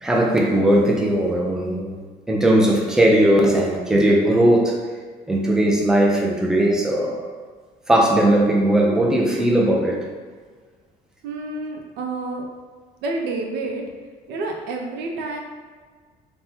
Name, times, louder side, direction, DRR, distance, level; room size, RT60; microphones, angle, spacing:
voice 1, 0.0-2.0 2.3-4.8 5.3-7.3 7.9-10.1, right 1 dB, 5° right, -1 dB, 0.4 m, -18 dB
voice 2, 11.2-12.4 13.0-13.9 14.3-15.4, right 2 dB, 90° right, 1 dB, 0.5 m, -29 dB
3.4 x 2.1 x 2.7 m, 1.5 s
cardioid pair, 110°, 17 cm